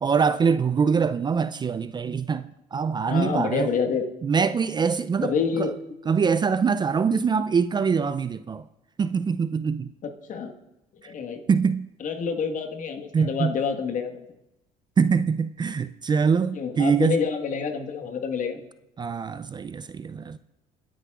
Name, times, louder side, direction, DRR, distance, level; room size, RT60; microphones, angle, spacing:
voice 1, 0.0-3.7 4.2-5.7 6.1-8.7 9.0-9.9 11.0-11.1 11.5-11.9 13.1-13.5 15.0-17.2 19.0-20.4, right 6 dB, 25° right, 0.4 m, -24 dB
voice 2, 3.1-4.1 5.2-5.8 10.0-10.5 10.9-11.4 12.0-14.1 16.5-18.6, left 6 dB, 55° left, 1.5 m, -28 dB
29.0 x 10.0 x 2.4 m
supercardioid pair, 90°, 16 cm